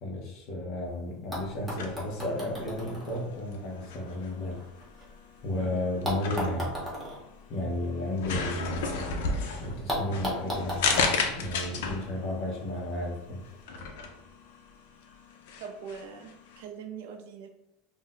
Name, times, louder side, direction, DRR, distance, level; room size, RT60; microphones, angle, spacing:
voice 1, 0.0-4.6 5.4-6.7 7.5-8.9 9.6-13.4, left 1 dB, 40° left, -1 dB, 0.7 m, -33 dB
sound 1, 1.3-5.4 6.0-9.0 9.3-9.4 9.9-12.3 13.3-13.4, equal, ahead, 0.8 m, -37 dB
sound 2, 1.7-16.6, left 4 dB, 80° left, 0.5 m, -35 dB
voice 2, 15.6-17.5, right 6 dB, 75° right, 4 dB, 0.5 m, -42 dB
2.5 x 2.1 x 3.7 m, 0.92 s
supercardioid pair, 170°, 0 cm